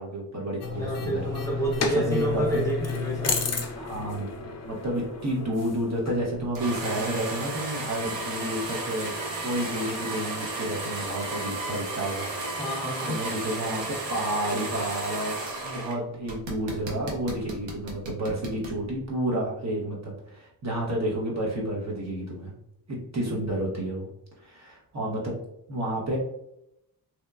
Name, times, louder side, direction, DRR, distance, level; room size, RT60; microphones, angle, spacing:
voice 1, 0.0-1.2 2.1-2.6 3.7-9.2 9.4-12.3 13.0-13.8 14.1-15.4 15.6-22.5 22.9-24.1 24.4-25.4 25.7-26.2, right 1 dB, 40° right, -3 dB, 0.7 m, -30 dB
sound 1, 0.6-6.8, left 5 dB, 40° left, 0.4 m, -32 dB
voice 2, 0.7-3.4 12.6-13.2, right 1 dB, 5° left, -4 dB, 0.8 m, -28 dB
sound 2, 6.5-15.9 16.3-18.8, right 2 dB, 80° right, 0.8 m, -33 dB
2.8 x 2.1 x 2.3 m, 0.81 s
cardioid pair, 75°, 43 cm